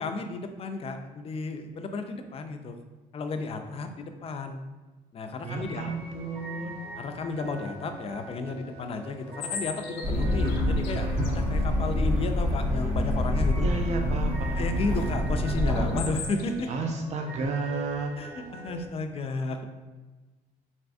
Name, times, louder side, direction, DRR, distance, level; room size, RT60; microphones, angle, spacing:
voice 1, 0.0-2.8 3.1-4.6 5.1-5.9 7.0-13.7 14.6-16.7 18.2-19.6, left 3 dB, 35° left, 6 dB, 0.4 m, -33 dB
voice 2, 5.4-6.8 13.6-15.0 16.7-18.1, right 3 dB, 40° right, 2 dB, 0.4 m, -32 dB
sound 1, 5.5-18.9, right 2 dB, 65° right, 1.4 m, -44 dB
sound 2, 9.4-11.4 15.4-16.7, left 7 dB, 85° left, 0.5 m, -38 dB
sound 3, 10.0-16.0, left 1 dB, 20° right, 1.2 m, -26 dB
4.0 x 3.4 x 2.5 m, 1.3 s
cardioid pair, 110°, 17 cm